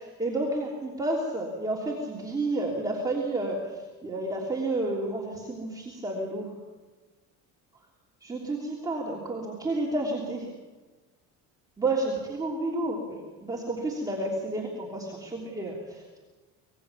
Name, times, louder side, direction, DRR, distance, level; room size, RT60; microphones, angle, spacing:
voice 1, 0.2-6.5 8.2-10.5 11.8-16.2, right 2 dB, 10° right, -3 dB, 3.1 m, -31 dB
25.0 x 20.0 x 7.1 m, 1.2 s
cardioid pair, 170°, 32 cm